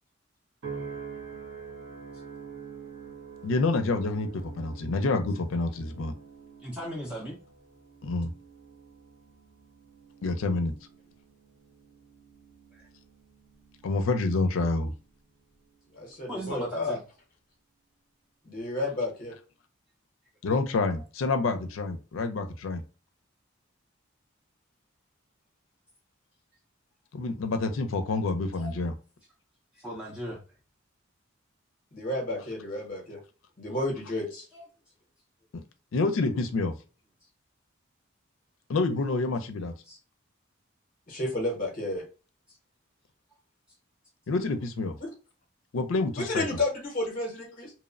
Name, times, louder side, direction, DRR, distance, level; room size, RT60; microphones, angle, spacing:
sound 1, 0.6-15.1 15.6-16.1, right 6 dB, 65° right, 0.8 m, -46 dB
voice 1, 3.4-6.1 8.0-8.3 10.2-10.7 13.8-14.9 20.4-22.8 27.1-28.9 35.5-35.6 35.9-36.7 38.7-39.7 44.3-45.0 45.7-46.6, left 3 dB, 75° left, 7 dB, 0.4 m, -28 dB
voice 2, 6.6-7.4 12.7-12.9 16.3-17.0 28.6-28.7 29.7-30.4 34.5-34.7 39.9-40.0, equal, 5° right, -3 dB, 0.4 m, -37 dB
voice 3, 15.9-17.0 18.4-19.3 31.9-33.2 33.6-34.4 41.1-42.0 45.0-45.1 46.2-47.7, left 2 dB, 40° left, 0 dB, 0.7 m, -31 dB
2.8 x 2.0 x 2.4 m, 0.35 s
head